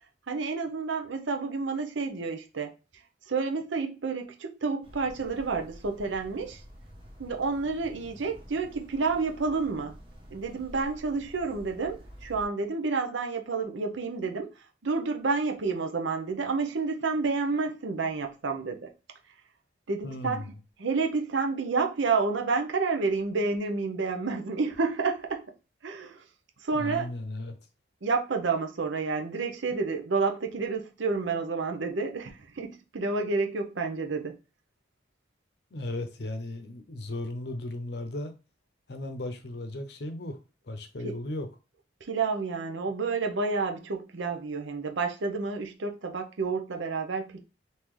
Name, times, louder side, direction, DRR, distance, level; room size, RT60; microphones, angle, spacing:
voice 1, 0.3-2.7 3.3-6.6 7.2-10.0 10.3-14.5 14.8-18.9 19.9-20.4 20.8-25.5 25.8-26.2 26.6-27.1 28.0-34.3 41.0-41.1 42.0-47.4, right 4 dB, 85° right, 0.7 m, -29 dB
sound 1, 4.8-12.5, equal, 30° right, 0.7 m, -49 dB
voice 2, 20.0-20.5 26.7-27.6 35.7-38.3 38.9-40.4 40.6-41.5, left 1 dB, 60° left, 0.6 m, -36 dB
3.7 x 2.7 x 3.1 m
head